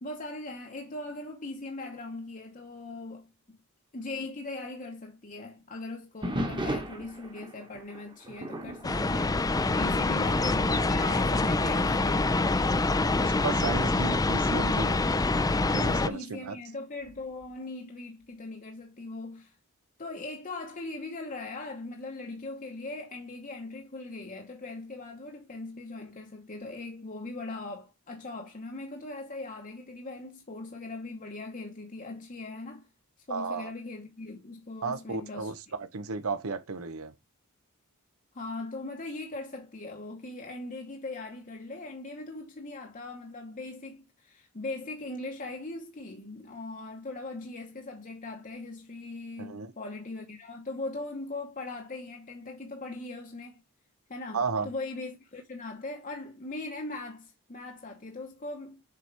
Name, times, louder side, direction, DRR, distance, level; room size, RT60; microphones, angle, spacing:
voice 1, 0.0-3.6 3.9-12.3 15.8-19.6 20.0-32.9 33.2-35.5 38.3-53.6 54.1-58.8, left 2 dB, 35° left, 1.0 m, -40 dB
sound 1, 6.2-10.4 10.7-11.0 11.7-11.8 12.5-15.2 17.0-17.5, right 1 dB, 20° right, 1.3 m, -38 dB
sound 2, 8.8-16.1, left 2 dB, 15° left, 0.5 m, -25 dB
voice 2, 13.2-15.0 15.7-16.6 33.3-33.7 34.8-37.1 49.4-49.7 54.3-54.7, right 4 dB, 70° right, 0.8 m, -34 dB
6.9 x 4.5 x 3.3 m
head